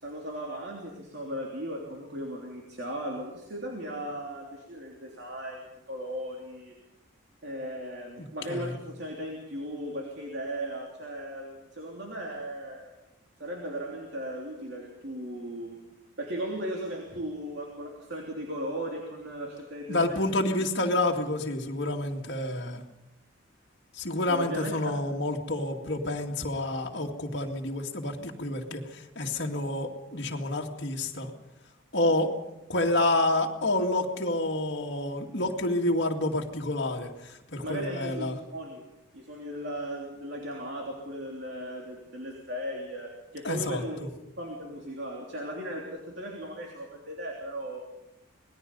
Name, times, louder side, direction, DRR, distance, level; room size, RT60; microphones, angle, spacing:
voice 1, 0.0-6.7 7.4-12.9 13.4-15.8 16.2-20.3 24.3-24.7 37.6-38.8 39.1-44.0 44.4-47.8, equal, 55° right, -1 dB, 3.3 m, -37 dB
voice 2, 19.9-22.8 24.0-31.3 31.9-32.3 32.7-37.1 37.5-38.4 43.4-44.1, left 2 dB, 55° left, 1 dB, 2.2 m, -29 dB
26.0 x 19.5 x 5.4 m, 0.91 s
head